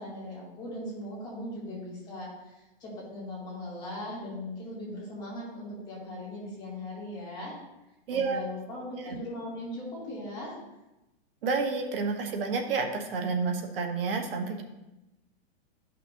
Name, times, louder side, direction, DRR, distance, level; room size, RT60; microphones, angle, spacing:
voice 1, 0.0-7.5 8.1-10.6, left 1 dB, 15° left, -8 dB, 2.6 m, -39 dB
voice 2, 8.1-8.4 9.0-9.1 11.4-14.6, right 4 dB, 65° right, 3 dB, 1.3 m, -29 dB
11.5 x 5.8 x 2.7 m, 0.97 s
supercardioid pair, 175°, 31 cm